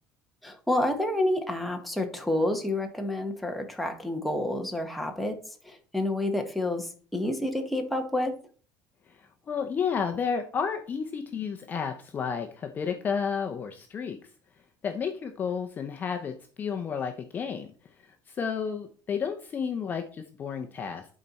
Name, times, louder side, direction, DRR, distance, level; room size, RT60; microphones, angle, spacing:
voice 1, 0.4-5.4 5.6-8.3, left 1 dB, ahead, 3 dB, 0.9 m, -29 dB
voice 2, 9.1-14.2 14.8-17.7 18.0-21.1, left 6 dB, 25° left, 5 dB, 0.6 m, -32 dB
11.0 x 4.3 x 4.0 m, 0.41 s
cardioid pair, 170°, 7 cm